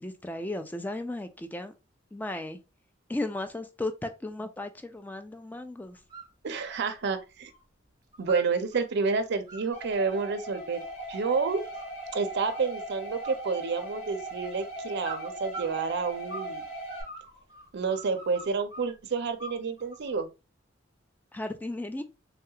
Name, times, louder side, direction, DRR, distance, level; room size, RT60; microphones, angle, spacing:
voice 1, 0.0-1.7 2.1-2.6 3.1-6.0 21.3-22.0, left 2 dB, 10° left, 0.3 m, -35 dB
sound 1, 5.9-6.3 6.7-7.6 7.9-8.8 9.3-12.0 12.4-12.9 13.2-14.2 15.0-16.6 16.9-18.9 19.4-20.1, right 1 dB, 20° right, 0.8 m, -44 dB
voice 2, 6.4-7.5 8.2-10.8 11.1-11.6 12.1-16.6 17.7-20.3, right 4 dB, 60° right, 0.5 m, -29 dB
sound 2, 9.7-17.0, right 1 dB, 40° left, 1.3 m, -39 dB
3.2 x 2.3 x 2.7 m
head